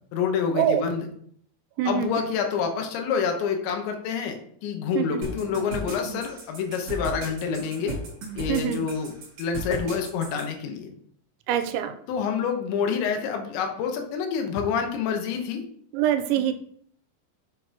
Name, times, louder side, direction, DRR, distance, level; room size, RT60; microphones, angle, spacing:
voice 1, 0.1-1.0 1.9-4.4 4.6-8.0 8.4-10.9 12.1-15.6, left 6 dB, 80° left, 4 dB, 3.4 m, -27 dB
voice 2, 1.8-2.3 5.0-5.2 8.5-8.8 11.5-11.9 15.9-16.5, right 10 dB, 90° right, 9 dB, 2.9 m, -24 dB
sound 1, 5.2-10.5, right 2 dB, 45° right, 2.9 m, -35 dB
7.9 x 7.1 x 2.9 m, 0.65 s
omnidirectional pair, 5.3 m